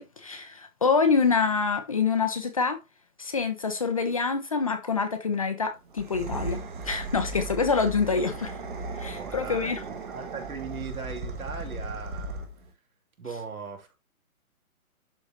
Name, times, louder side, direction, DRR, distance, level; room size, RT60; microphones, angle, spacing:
voice 1, 0.0-2.8 3.2-8.6 9.0-9.8, left 5 dB, 25° left, 0.6 m, -26 dB
sound 1, 5.9-12.7, right 2 dB, 35° right, 1.4 m, -36 dB
voice 2, 9.0-12.5 13.2-13.9, right 5 dB, 75° right, 2.7 m, -39 dB
11.5 x 3.9 x 2.9 m
hypercardioid pair, 160°, 43 cm